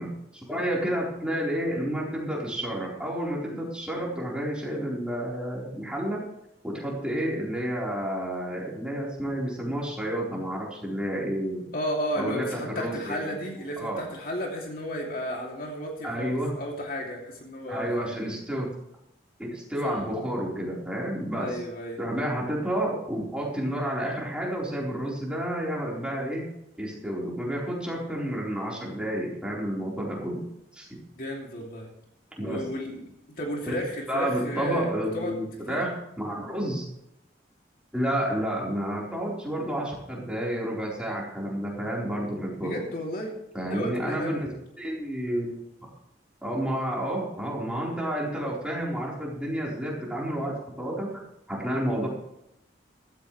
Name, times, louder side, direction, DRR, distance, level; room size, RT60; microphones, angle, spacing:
voice 1, 0.0-6.2 6.6-11.7 12.1-13.4 13.8-14.0 16.0-16.5 17.7-18.7 19.4-21.6 22.0-26.4 26.8-30.4 30.7-30.9 32.4-32.6 33.7-33.8 34.1-36.9 37.9-42.8 43.5-44.5 44.8-45.9 46.4-51.1 51.5-52.1, right 1 dB, 5° right, -4 dB, 4.2 m, -30 dB
voice 2, 11.7-18.1 19.8-20.0 21.4-22.0 31.1-31.9 32.4-35.4 35.7-35.8 42.6-43.4 43.7-44.5, equal, 50° left, 0 dB, 2.8 m, -33 dB
15.5 x 14.0 x 3.3 m, 0.82 s
head